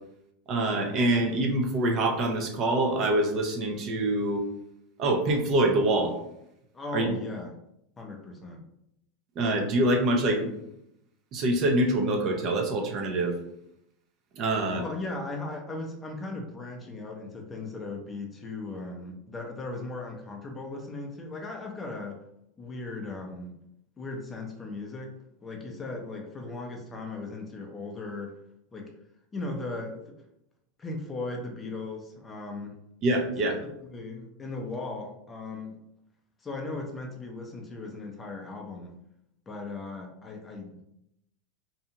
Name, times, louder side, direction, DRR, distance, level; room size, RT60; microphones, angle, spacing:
voice 1, 0.5-4.5 5.0-6.1 6.9-7.1 9.4-10.5 11.3-13.4 14.4-14.8 33.0-33.6, right 1 dB, 45° right, 2 dB, 0.5 m, -25 dB
voice 2, 6.7-7.5 8.0-8.6 14.7-22.2 22.6-23.6 24.0-28.4 28.7-28.9 29.3-30.2 30.8-32.8 33.6-35.7 36.4-38.9 39.5-40.8, left 2 dB, 20° left, 1 dB, 0.5 m, -37 dB
2.6 x 2.2 x 2.8 m, 0.79 s
supercardioid pair, 120°, 0 cm